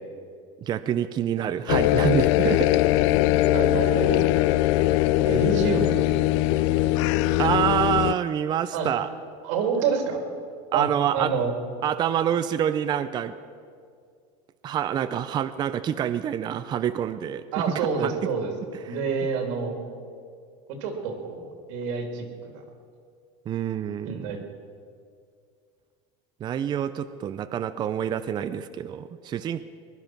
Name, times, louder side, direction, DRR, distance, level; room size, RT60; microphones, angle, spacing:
voice 1, 0.6-2.8 7.4-9.1 10.7-11.3 11.8-13.3 14.6-18.2 18.8-19.0 23.5-24.3 26.4-29.6, right 9 dB, 25° right, 12 dB, 0.5 m, -27 dB
sound 1, 1.7-8.1, left 16 dB, 70° left, 0.4 m, -21 dB
voice 2, 3.5-4.3 5.3-6.5 8.7-8.9 9.4-10.2 10.7-10.9 11.1-11.5 17.5-18.5 18.9-19.7 20.7-22.6 24.0-24.4, right 5 dB, 75° right, 4 dB, 3.0 m, -28 dB
21.0 x 11.0 x 6.0 m, 2.2 s
supercardioid pair, 140°, 16 cm